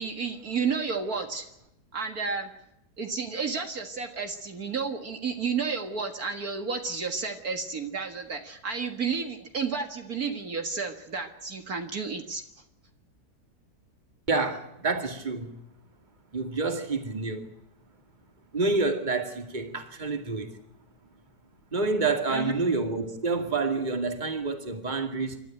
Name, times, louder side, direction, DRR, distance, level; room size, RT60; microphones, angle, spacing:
voice 1, 0.0-1.5 1.9-2.5 3.0-12.4 22.3-22.5, right 5 dB, 60° right, 2.2 m, -31 dB
voice 2, 14.3-15.5 16.3-17.5 18.5-20.6 21.7-25.4, right 3 dB, 25° right, 2.4 m, -28 dB
28.0 x 13.0 x 9.1 m
omnidirectional pair, 1.8 m